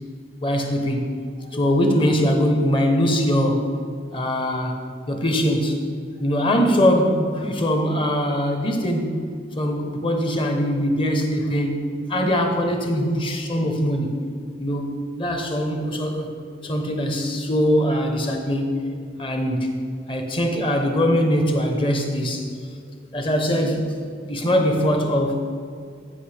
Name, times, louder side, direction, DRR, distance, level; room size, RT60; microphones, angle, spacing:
voice 1, 0.4-1.0 1.4-3.6 4.1-4.8 5.1-5.8 6.2-9.3 9.6-11.8 12.1-14.1 14.6-16.3 16.6-18.7 19.2-19.7 20.1-22.5 23.1-24.0 24.2-25.4, equal, 25° left, 4 dB, 0.8 m, -22 dB
14.0 x 5.5 x 3.4 m, 2.2 s
head